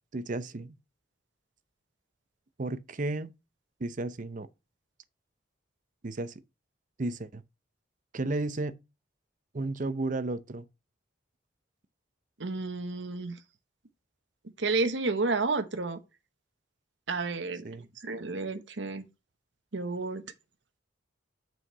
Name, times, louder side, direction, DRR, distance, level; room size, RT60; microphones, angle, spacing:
voice 1, 0.1-0.8 2.6-3.3 3.8-4.5 6.0-6.3 7.0-7.4 8.1-8.8 9.5-10.6 17.6-17.9, right 2 dB, 45° right, 0.6 m, -33 dB
voice 2, 12.4-13.4 14.6-16.0 17.1-17.6 18.0-19.0 19.7-20.2, right 3 dB, 75° right, 1.0 m, -30 dB
6.3 x 4.8 x 5.5 m
head